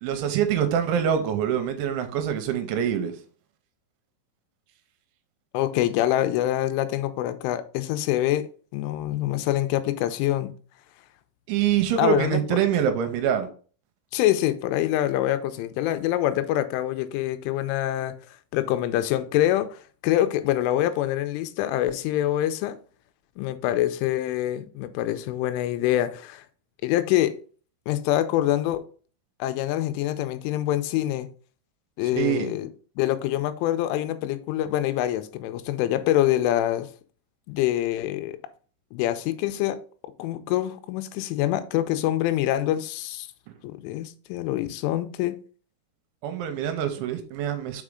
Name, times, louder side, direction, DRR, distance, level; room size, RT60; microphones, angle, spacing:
voice 1, 0.0-3.1 11.5-13.5 32.1-32.5 46.2-47.8, right 9 dB, 85° right, 3.1 m, -25 dB
voice 2, 5.5-10.5 12.0-12.6 14.1-18.1 18.5-22.8 23.4-26.4 26.8-27.4 27.9-28.8 29.4-31.3 32.0-32.7 33.0-36.9 37.5-38.4 38.9-39.8 40.2-43.3 43.6-45.4, left 13 dB, 85° left, 3.1 m, -25 dB
6.4 x 4.9 x 3.7 m
omnidirectional pair, 5.5 m